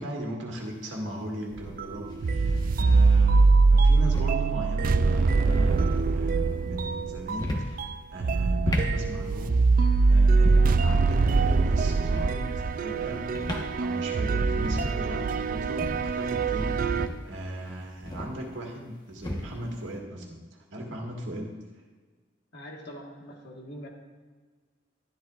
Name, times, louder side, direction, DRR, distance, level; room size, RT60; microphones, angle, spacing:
voice 1, 0.0-3.4 3.7-9.6 10.1-13.3 13.8-21.5, equal, 80° right, 0 dB, 1.8 m, -37 dB
sound 1, 0.6-0.7 2.1-2.6 3.8-4.4 5.5-6.0 7.2-7.8 8.5-9.0 10.3-10.8 12.0-12.4 13.2-13.7 14.1-14.2 14.4-14.9 15.6-16.1 16.8-18.4 19.1-19.6, left 1 dB, 20° left, 1.2 m, -34 dB
sound 2, 1.6-17.1, right 4 dB, 45° right, 0.4 m, -23 dB
voice 2, 22.5-23.9, equal, 60° left, 0 dB, 1.6 m, -43 dB
12.5 x 11.0 x 2.5 m, 1.4 s
head